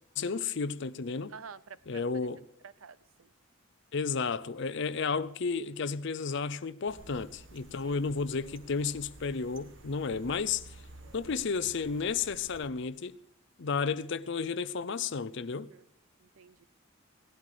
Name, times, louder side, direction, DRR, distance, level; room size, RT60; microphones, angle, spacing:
voice 1, 0.2-1.3 1.9-2.4 3.9-10.8 11.1-13.2 13.6-15.7, left 5 dB, 55° left, 0.6 m, -32 dB
voice 2, 1.3-2.3 2.6-3.3 7.8-8.0 15.5-15.9 16.2-16.7, right 6 dB, 75° right, 0.7 m, -50 dB
sound 1, 6.9-12.7, right 2 dB, 60° right, 1.9 m, -52 dB
18.0 x 12.0 x 4.9 m
head